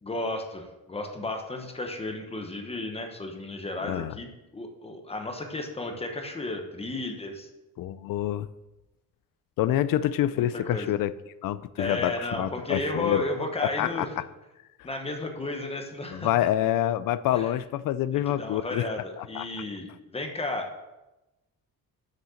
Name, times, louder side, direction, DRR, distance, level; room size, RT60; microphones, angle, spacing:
voice 1, 0.0-7.5 10.4-10.9 11.8-14.1 14.8-16.5 17.3-17.5 18.1-20.7, left 2 dB, 15° left, 4 dB, 1.0 m, -33 dB
voice 2, 7.8-8.5 9.6-11.1 11.4-13.2 13.6-14.1 16.1-18.9 19.2-19.4, left 12 dB, 65° left, 15 dB, 0.5 m, -27 dB
7.1 x 6.7 x 6.4 m, 1.0 s
cardioid pair, 175°, 36 cm